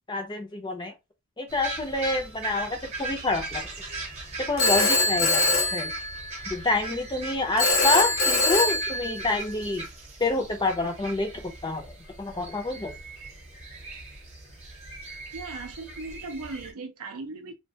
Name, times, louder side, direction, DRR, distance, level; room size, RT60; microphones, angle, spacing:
voice 1, 0.1-0.9 1.4-3.7 4.4-5.9 6.5-9.9 10.2-12.9, left 2 dB, 20° left, 0.5 m, -28 dB
sound 1, 1.5-16.7, right 2 dB, 30° right, 0.7 m, -39 dB
Telephone, 4.6-6.5 7.6-9.5, left 2 dB, 75° left, 0.8 m, -23 dB
voice 2, 15.3-17.5, right 3 dB, 85° right, 0.5 m, -38 dB
2.3 x 2.2 x 2.6 m
head